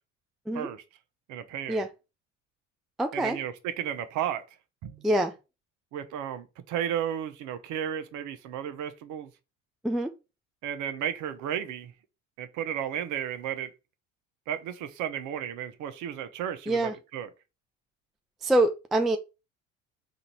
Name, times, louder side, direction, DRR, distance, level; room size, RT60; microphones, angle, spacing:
voice 1, 1.3-1.8 3.1-4.4 4.8-5.1 5.9-9.3 10.6-11.9 12.4-13.7 14.5-17.3, right 9 dB, 50° right, 0.8 m, -33 dB
voice 2, 3.0-3.4 5.0-5.3 9.8-10.1 16.7-16.9 18.4-19.2, right 1 dB, ahead, 0.3 m, -25 dB
3.9 x 2.7 x 4.4 m
figure-of-eight pair, 60°, 38 cm